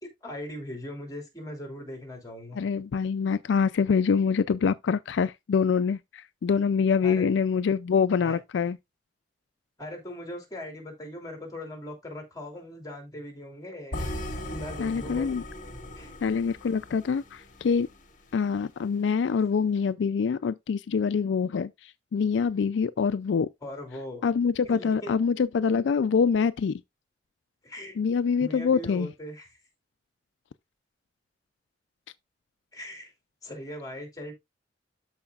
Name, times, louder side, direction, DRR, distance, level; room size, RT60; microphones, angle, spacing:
voice 1, 0.0-2.6 7.0-7.3 8.2-8.4 9.8-14.1 14.5-15.3 16.0-16.1 23.6-24.3 24.6-25.2 27.6-28.0 28.4-29.6 32.7-33.1 33.4-34.3, left 1 dB, 20° left, 3.0 m, -40 dB
voice 2, 2.6-8.8 14.8-15.4 16.2-17.9 18.3-23.5 24.2-26.8 28.0-29.1, left 6 dB, 80° left, 0.4 m, -25 dB
sound 1, 13.9-18.0, left 1 dB, 45° left, 1.5 m, -38 dB
13.0 x 4.9 x 2.4 m
head